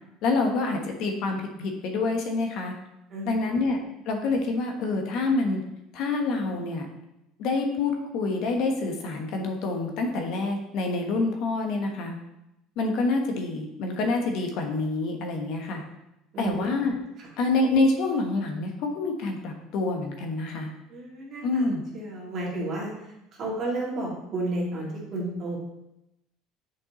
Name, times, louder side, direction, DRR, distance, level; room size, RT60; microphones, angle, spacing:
voice 1, 0.2-2.7 3.2-3.8 4.1-5.6 5.9-6.9 7.4-12.2 12.8-15.8 16.4-17.0 17.4-20.7 21.4-21.8, left 3 dB, 60° left, 3 dB, 1.0 m, -27 dB
voice 2, 3.1-3.5 16.3-16.7 17.2-17.3 20.9-21.7 21.9-22.9 23.3-25.6, right 1 dB, 40° right, -4 dB, 2.1 m, -32 dB
6.7 x 5.2 x 3.0 m, 0.88 s
cardioid pair, 140°, 0 cm